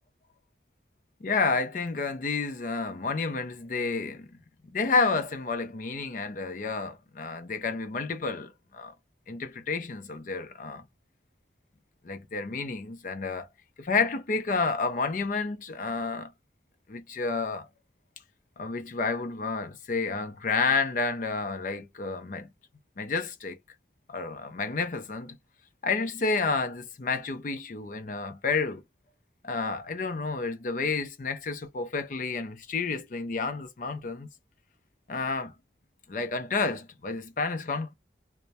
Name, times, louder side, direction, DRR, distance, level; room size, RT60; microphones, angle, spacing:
voice 1, 1.2-4.4 4.7-8.9 9.3-10.8 12.0-13.5 13.8-16.3 16.9-17.7 18.6-22.5 23.0-23.6 24.1-25.4 25.8-28.8 29.4-34.3 35.1-35.5 36.1-37.9, left 4 dB, 45° left, 0.4 m, -30 dB
2.3 x 2.0 x 2.7 m
head